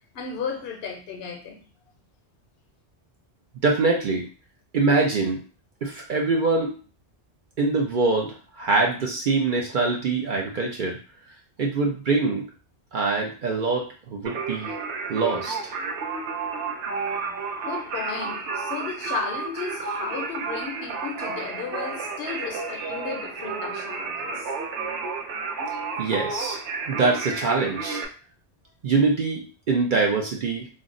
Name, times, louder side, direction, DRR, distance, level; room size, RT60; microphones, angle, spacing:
voice 1, 0.1-1.6 17.1-24.5, left 6 dB, 65° left, 2 dB, 0.8 m, -34 dB
voice 2, 3.6-4.2 4.7-5.4 5.8-6.8 7.6-11.0 11.6-12.4 12.9-14.7 15.1-15.7 26.0-26.6 26.9-28.0 28.8-30.7, right 3 dB, 55° right, 0 dB, 0.6 m, -24 dB
Singing, 14.2-28.0, right 4 dB, 80° right, 0.9 m, -31 dB
2.5 x 2.0 x 3.7 m, 0.37 s
omnidirectional pair, 1.2 m